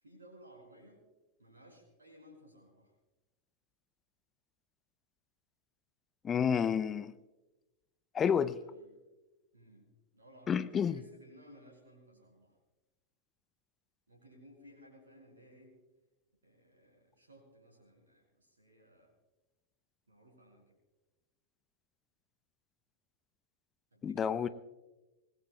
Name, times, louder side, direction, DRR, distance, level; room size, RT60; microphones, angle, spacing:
voice 1, 0.0-1.0 1.4-2.9 8.4-9.0 9.5-9.8 10.1-12.5 14.1-15.8 16.4-19.1 20.1-20.8 23.9-24.5, equal, 75° right, 5.3 m, -59 dB
voice 2, 6.2-7.1 8.1-8.6 10.5-11.0 24.0-24.5, left 7 dB, 25° left, 0.5 m, -29 dB
25.0 x 19.5 x 2.3 m
figure-of-eight pair, 90°, 0 cm